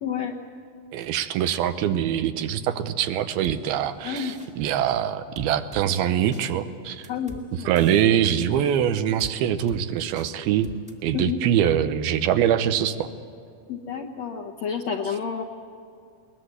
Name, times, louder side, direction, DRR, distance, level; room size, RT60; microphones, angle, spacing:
voice 1, 0.0-0.4 4.0-4.4 7.1-7.7 11.1-11.4 13.7-15.4, left 7 dB, 75° left, 1 dB, 1.6 m, -30 dB
voice 2, 0.9-7.1 7.5-10.7 11.0-13.1, right 10 dB, 85° right, 10 dB, 2.7 m, -23 dB
sound 1, 3.4-3.6 4.2-4.5 5.4-5.9 6.3-6.4 7.0-7.4 7.8-8.4 9.2-9.3 9.7-9.8 10.2-10.3 10.6-10.9, left 1 dB, 5° right, 0.7 m, -42 dB
22.0 x 20.0 x 8.1 m, 2.3 s
omnidirectional pair, 4.4 m